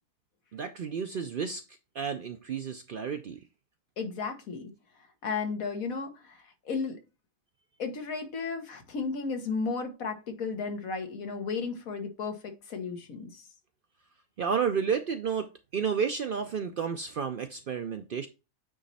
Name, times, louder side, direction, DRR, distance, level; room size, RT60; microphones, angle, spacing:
voice 1, 0.5-1.6 2.0-3.4 14.4-18.3, right 6 dB, 60° right, 0.5 m, -31 dB
voice 2, 4.0-4.7 5.2-7.0 7.8-13.4, left 4 dB, 90° left, 1.7 m, -34 dB
8.8 x 3.1 x 4.1 m
omnidirectional pair, 1.4 m